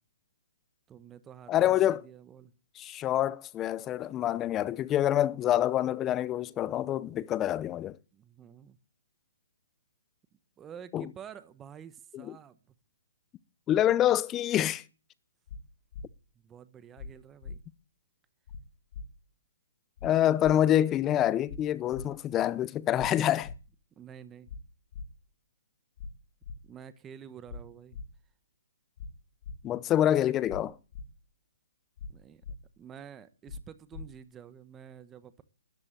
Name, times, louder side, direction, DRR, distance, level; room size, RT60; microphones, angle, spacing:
voice 1, 0.9-2.5 8.1-8.8 10.6-12.7 16.4-17.6 24.0-24.5 26.7-28.0 32.1-32.4 32.8-35.4, right 8 dB, 15° right, 1.1 m, -49 dB
voice 2, 1.5-2.0 2.8-8.0 10.9-11.1 12.1-12.3 13.7-14.8 20.0-23.5 29.6-30.8, left 12 dB, 20° left, 0.7 m, -26 dB
sound 1, 15.5-15.6 15.9-16.0 17.0-17.1 17.4-17.6 18.5-18.6 18.9-19.1 20.0-20.1 20.4-20.5 21.5-21.6 21.9-22.1 23.0-23.1 23.4-23.6 24.5-24.6 24.9-25.1 26.0-26.1 26.4-26.6 27.5-27.6 27.9-28.0 29.0-29.1 29.4-29.6 30.5-30.6 30.9-31.0 32.0-32.1 32.4-32.6 33.5-33.6 33.9-34.0, left 5 dB, 50° left, 2.8 m, -40 dB
13.0 x 12.0 x 9.1 m
hypercardioid pair, 150°, 0 cm